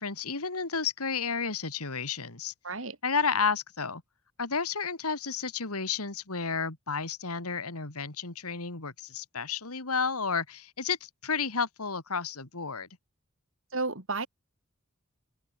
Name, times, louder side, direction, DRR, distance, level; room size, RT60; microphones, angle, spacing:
voice 1, 0.0-2.5 3.0-4.0 4.4-12.9, left 5 dB, 90° left, 2.6 m, -31 dB
voice 2, 2.6-3.0 13.7-14.3, right 3 dB, 60° right, 2.8 m, -32 dB
head